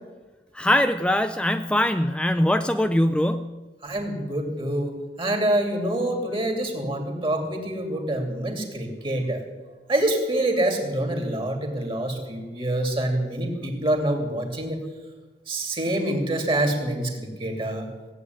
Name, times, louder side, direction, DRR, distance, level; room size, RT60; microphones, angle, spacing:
voice 1, 0.5-3.6, left 1 dB, 5° left, 9 dB, 0.4 m, -22 dB
voice 2, 3.8-4.9 5.2-9.4 9.9-14.8 15.5-17.9, right 1 dB, 30° right, 3 dB, 2.9 m, -26 dB
17.0 x 8.4 x 9.5 m, 1.3 s
head